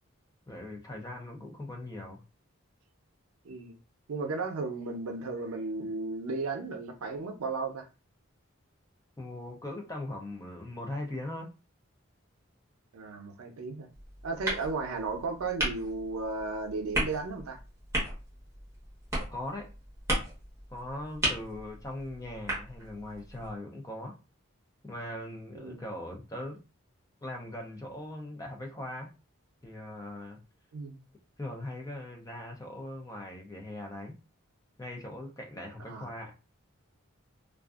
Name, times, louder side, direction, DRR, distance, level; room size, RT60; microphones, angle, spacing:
voice 1, 0.5-2.2 9.2-11.5 19.3-19.7 20.7-24.2 24.8-26.6 27.2-29.1 29.6-30.4 31.4-34.1 34.8-36.3, left 1 dB, 15° left, 0.4 m, -40 dB
voice 2, 3.4-3.8 4.1-7.9 12.9-13.9 14.2-17.6 25.5-25.8 30.7-31.0 35.9-36.1, right 3 dB, 85° right, 0.5 m, -35 dB
sound 1, 13.9-23.5, right 1 dB, 15° right, 1.0 m, -36 dB
2.5 x 2.3 x 2.4 m
head